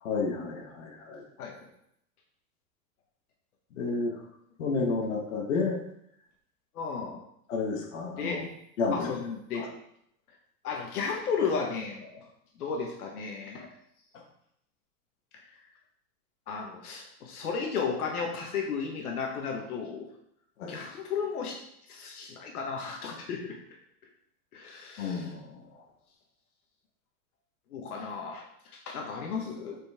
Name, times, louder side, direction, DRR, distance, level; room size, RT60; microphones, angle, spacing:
voice 1, 0.0-1.2 3.8-4.2 4.6-5.8 7.5-8.4 8.8-9.1 9.5-9.7 20.6-20.7 25.0-25.5, left 4 dB, 55° left, 0 dB, 1.6 m, -31 dB
voice 2, 6.7-7.2 8.2-8.4 8.9-9.7 10.6-12.2 12.6-13.7 15.3-15.4 16.5-20.1 20.7-21.6 21.9-23.6 24.5-25.3 27.7-28.4 28.7-29.8, left 5 dB, 70° left, 1 dB, 1.6 m, -34 dB
7.5 x 5.5 x 3.6 m, 0.73 s
supercardioid pair, 180°, 46 cm